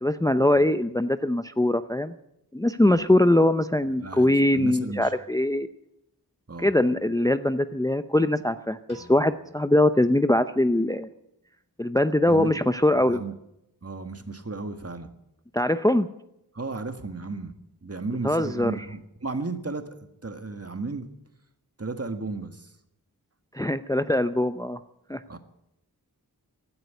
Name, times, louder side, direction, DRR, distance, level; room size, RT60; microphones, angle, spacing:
voice 1, 0.0-2.1 2.5-5.7 6.6-11.1 11.8-13.2 15.5-16.1 18.2-18.7 23.5-24.8 25.1-25.4, left 1 dB, 10° left, 11 dB, 0.6 m, -22 dB
voice 2, 2.8-3.2 4.0-5.1 6.5-6.7 12.3-12.6 12.9-13.3 13.8-15.1 16.5-17.5 17.8-20.0 20.2-21.1 21.8-22.7 25.3-25.4, right 3 dB, 40° right, 8 dB, 1.6 m, -34 dB
Piano, 8.9-11.1, left 1 dB, 75° left, 6.3 m, -54 dB
16.0 x 9.5 x 9.4 m, 0.84 s
wide cardioid pair, 45°, 39 cm